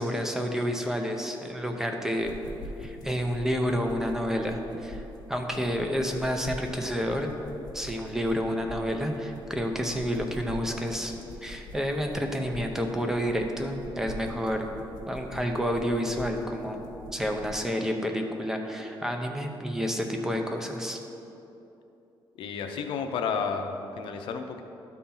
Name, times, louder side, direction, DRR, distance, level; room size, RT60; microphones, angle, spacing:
voice 1, 0.0-2.3 2.8-5.0 5.3-7.3 7.7-11.1 11.4-14.7 15.1-16.8 17.1-21.0, equal, 5° right, 3 dB, 0.6 m, -29 dB
sound 1, 2.2-17.5, left 1 dB, 50° left, 1.3 m, -44 dB
voice 2, 22.4-24.6, left 6 dB, 80° left, 5 dB, 0.6 m, -31 dB
12.0 x 4.3 x 3.9 m, 2.9 s
cardioid pair, 160°, 9 cm